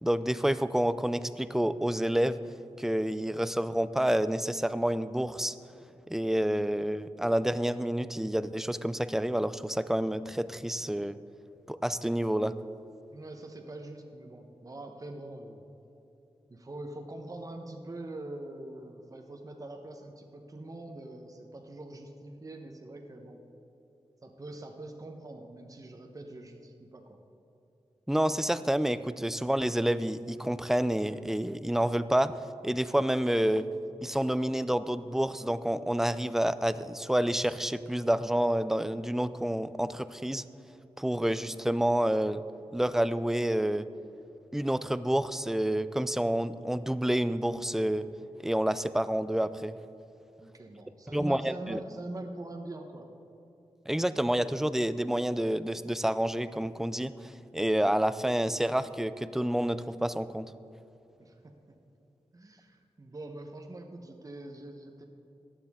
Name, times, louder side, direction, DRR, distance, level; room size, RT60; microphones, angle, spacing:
voice 1, 0.0-2.4 2.8-5.5 6.1-11.2 11.7-12.5 28.1-32.4 32.6-33.6 34.0-40.4 41.0-42.4 42.7-43.9 44.5-48.1 48.4-49.8 51.1-51.8 53.9-60.5, right 1 dB, 5° right, 14 dB, 0.4 m, -28 dB
voice 2, 13.1-15.7 16.5-23.4 24.2-27.2 50.4-53.1 61.2-61.5 62.3-65.0, right 2 dB, 30° right, 3 dB, 1.0 m, -43 dB
14.5 x 10.0 x 3.6 m, 2.9 s
wide cardioid pair, 80°, 11 cm